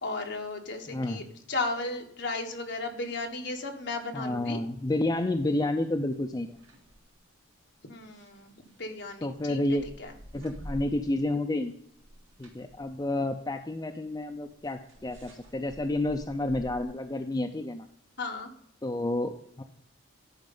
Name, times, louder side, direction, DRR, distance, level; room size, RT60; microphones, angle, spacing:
voice 1, 0.0-4.6 7.9-10.1 18.2-18.5, left 3 dB, 55° left, 3 dB, 1.3 m, -35 dB
voice 2, 0.9-1.2 4.1-6.6 9.2-9.9 10.3-11.7 12.4-17.9 18.8-19.6, left 1 dB, 20° left, 5 dB, 0.4 m, -30 dB
sound 1, 5.4-5.5 6.0-7.1 8.0-11.4 11.7-16.8, equal, 70° right, 2.1 m, -48 dB
11.0 x 5.2 x 5.4 m, 0.73 s
head